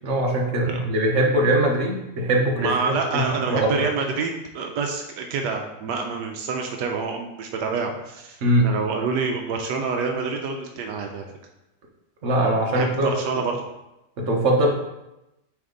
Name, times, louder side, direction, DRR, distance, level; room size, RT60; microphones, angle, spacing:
voice 1, 0.0-3.9 8.4-8.7 12.2-13.1 14.2-14.7, right 1 dB, 50° right, 0 dB, 1.3 m, -21 dB
voice 2, 2.6-8.4 8.6-11.4 12.7-13.6, right 4 dB, 80° right, 3 dB, 1.2 m, -27 dB
8.6 x 3.5 x 3.8 m, 0.93 s
omnidirectional pair, 1.8 m